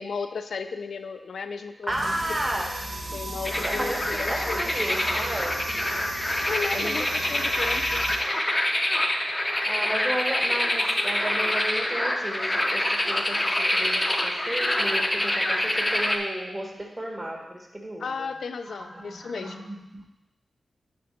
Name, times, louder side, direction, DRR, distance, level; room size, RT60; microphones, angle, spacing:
voice 1, 0.0-2.1 3.1-4.6 6.4-8.1 18.0-19.7, left 5 dB, 80° left, 8 dB, 0.4 m, -34 dB
voice 2, 1.8-2.7 3.6-5.6 6.7-7.0 9.6-18.3 18.6-20.1, right 1 dB, 20° right, 1 dB, 1.0 m, -33 dB
sound 1, 1.9-8.2, right 2 dB, 45° right, 0.8 m, -35 dB
sound 2, 3.4-16.2, left 1 dB, 15° left, 0.6 m, -26 dB
6.9 x 3.7 x 6.4 m, 0.92 s
wide cardioid pair, 165°, 0 cm